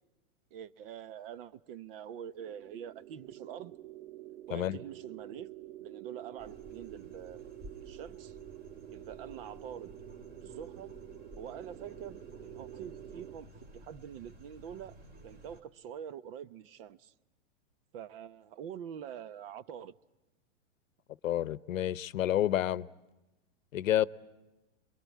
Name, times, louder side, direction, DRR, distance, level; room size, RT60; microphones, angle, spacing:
voice 1, 0.5-3.7 4.5-5.5 5.8-8.4 8.9-9.9 10.4-10.9 11.4-15.0 15.2-17.1 17.9-19.9, right 9 dB, 45° right, 0.9 m, -45 dB
sound 1, 2.4-13.4, right 13 dB, 80° right, 1.7 m, -48 dB
sound 2, 6.4-15.6, equal, 25° right, 2.3 m, -54 dB
voice 2, 21.2-22.9 23.7-24.1, left 12 dB, 90° left, 0.9 m, -29 dB
28.0 x 22.5 x 8.4 m
hypercardioid pair, 150°, 38 cm